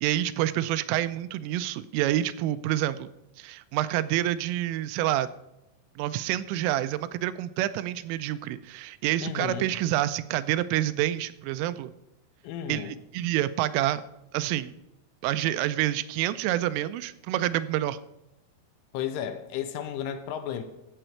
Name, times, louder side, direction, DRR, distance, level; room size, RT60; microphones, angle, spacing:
voice 1, 0.0-3.1 3.4-5.3 6.0-11.9 12.7-14.0 14.3-14.7 15.2-18.0, right 13 dB, 90° right, 13 dB, 3.2 m, -28 dB
voice 2, 9.2-9.7 12.4-13.0 18.9-20.6, left 9 dB, 85° left, 8 dB, 3.3 m, -33 dB
14.0 x 7.9 x 4.4 m, 0.91 s
omnidirectional pair, 5.7 m